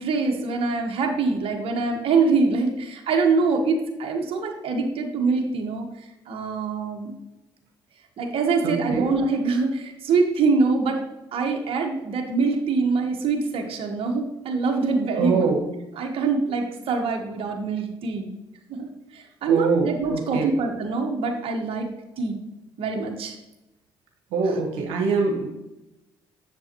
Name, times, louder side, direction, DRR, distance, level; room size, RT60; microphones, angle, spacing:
voice 1, 0.0-5.9 6.3-7.1 8.2-11.0 11.3-15.5 16.0-18.3 18.7-18.9 19.1-21.9 22.2-22.4 22.8-23.4, right 4 dB, 60° right, 2 dB, 1.2 m, -24 dB
voice 2, 8.6-9.1 15.1-15.6 19.5-20.5 24.3-25.5, right 4 dB, 80° right, 1 dB, 1.2 m, -24 dB
7.6 x 7.0 x 2.9 m, 0.95 s
hypercardioid pair, 60°, 11 cm